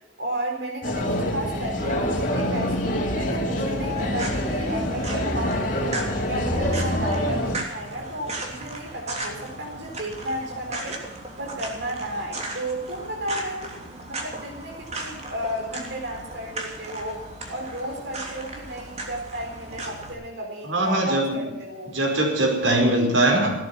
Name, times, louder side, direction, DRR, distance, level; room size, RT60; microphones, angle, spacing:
voice 1, 0.2-6.0 6.3-11.0 11.4-17.2 17.5-21.9, right 1 dB, 65° right, 0 dB, 4.1 m, -33 dB
sound 1, 0.8-7.6, left 1 dB, 45° left, 3.1 m, -26 dB
sound 2, 3.9-20.1, right 2 dB, 35° right, 3.2 m, -37 dB
voice 2, 20.7-21.4 21.9-23.5, right 1 dB, 90° right, 2 dB, 5.0 m, -21 dB
17.0 x 13.0 x 6.0 m, 1.0 s
head